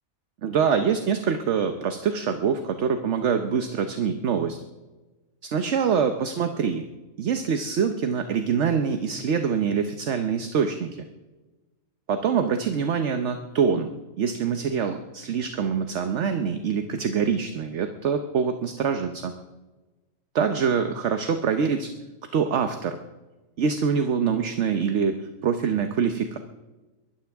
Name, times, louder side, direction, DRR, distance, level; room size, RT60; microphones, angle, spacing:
voice 1, 0.4-4.6 5.5-6.8 7.2-10.9 12.1-13.9 14.2-19.3 20.3-21.9 22.3-23.0 23.6-26.4, right 6 dB, 60° right, 8 dB, 1.1 m, -25 dB
23.0 x 13.0 x 3.5 m, 1.2 s
omnidirectional pair, 1.4 m